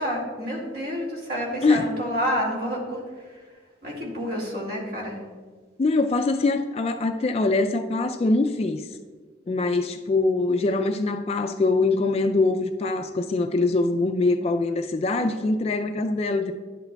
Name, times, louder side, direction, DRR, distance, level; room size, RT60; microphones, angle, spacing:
voice 1, 0.0-3.0 3.8-5.2, equal, 55° right, -2 dB, 2.1 m, -29 dB
voice 2, 5.8-8.9 9.5-16.5, left 3 dB, 35° left, 7 dB, 0.3 m, -23 dB
10.5 x 8.0 x 2.3 m, 1.5 s
head